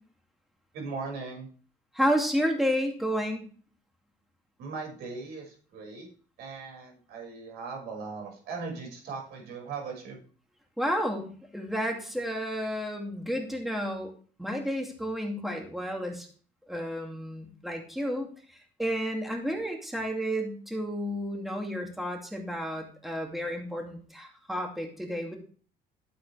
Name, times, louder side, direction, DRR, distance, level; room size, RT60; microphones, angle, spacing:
voice 1, 0.7-1.5 4.6-6.1 6.4-10.2, right 4 dB, 75° right, 1 dB, 5.8 m, -39 dB
voice 2, 1.9-3.4 10.8-14.1 14.4-16.3 16.7-25.4, equal, ahead, 1 dB, 2.5 m, -31 dB
12.0 x 7.8 x 3.4 m, 0.41 s
cardioid pair, 110°, 17 cm